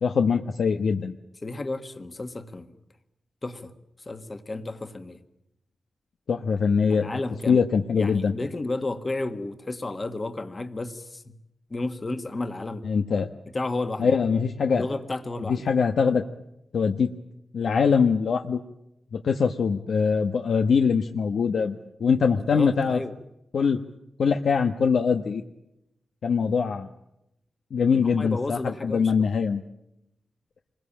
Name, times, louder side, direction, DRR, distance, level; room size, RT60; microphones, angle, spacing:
voice 1, 0.0-1.1 6.3-7.1 7.5-8.3 12.8-13.3 14.0-14.8 15.5-16.2 16.7-17.1 17.5-18.6 19.1-23.0 23.5-23.8 24.2-25.4 26.2-26.9 27.7-29.6, left 5 dB, 80° left, 6 dB, 1.2 m, -23 dB
voice 2, 1.4-2.7 3.4-3.7 4.0-5.2 6.9-7.6 8.0-11.4 11.7-12.9 13.5-14.1 14.7-15.7 22.4-23.2 27.9-29.3, left 2 dB, 30° left, 8 dB, 1.6 m, -32 dB
27.0 x 22.0 x 8.8 m, 0.85 s
wide cardioid pair, 145°, 0 cm